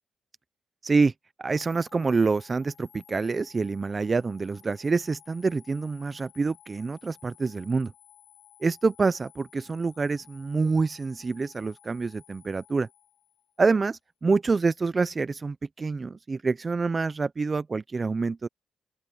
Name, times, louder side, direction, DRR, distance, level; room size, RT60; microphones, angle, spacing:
voice 1, 1.4-7.9 8.6-12.9 13.6-18.5, right 4 dB, 35° right, 0.6 m, -26 dB
sound 1, 1.5-13.7, left 11 dB, 80° left, 6.4 m, -56 dB
open air
cardioid pair, 65°, 0 cm